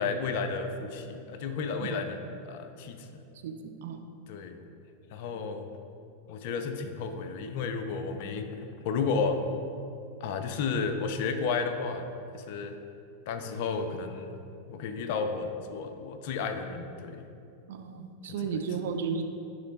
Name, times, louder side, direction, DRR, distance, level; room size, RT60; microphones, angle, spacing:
voice 1, 0.0-2.2 2.5-3.1 4.3-4.6 5.1-5.7 6.3-9.4 10.2-12.1 12.3-12.7 13.3-14.3 14.7-17.2 18.4-18.6, left 5 dB, 50° left, 7 dB, 0.5 m, -32 dB
voice 2, 3.4-4.0 17.7-19.2, right 6 dB, 55° right, 6 dB, 0.5 m, -34 dB
9.5 x 3.2 x 3.9 m, 2.6 s
figure-of-eight pair, 90°, 0 cm